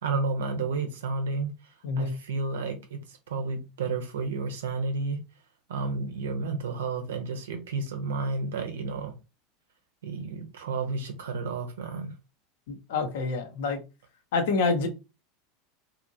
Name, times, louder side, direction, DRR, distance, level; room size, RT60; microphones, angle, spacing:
voice 1, 0.0-5.2 5.7-9.1 10.0-12.1, right 3 dB, 75° right, 0.7 m, -31 dB
voice 2, 12.7-13.8 14.3-14.9, left 4 dB, 65° left, 0.7 m, -27 dB
2.8 x 2.6 x 2.6 m
hypercardioid pair, 80°, 0 cm